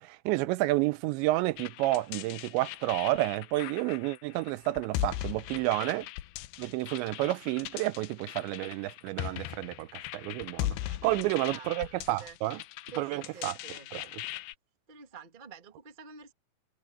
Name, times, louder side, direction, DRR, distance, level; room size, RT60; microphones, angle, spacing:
voice 1, 0.0-6.1 6.6-12.6 13.0-13.6 13.9-14.2, right 17 dB, 90° right, 3.0 m, -30 dB
sound 1, 1.6-14.5, left 14 dB, 80° left, 2.5 m, -39 dB
voice 2, 5.5-6.1 11.0-12.4 12.9-13.9 14.9-16.3, right 6 dB, 35° right, 0.7 m, -49 dB
omnidirectional pair, 5.1 m